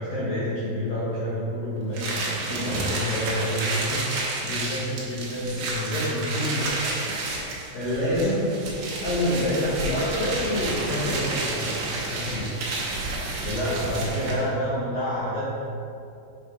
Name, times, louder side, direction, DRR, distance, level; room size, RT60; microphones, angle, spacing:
voice 1, 0.0-7.2 7.5-11.8 12.0-12.6 13.4-15.5, left 1 dB, 80° left, -9 dB, 2.0 m, -28 dB
sound 1, 1.9-14.5, right 2 dB, 85° right, 1.8 m, -30 dB
8.1 x 3.7 x 4.8 m, 2.6 s
omnidirectional pair, 5.7 m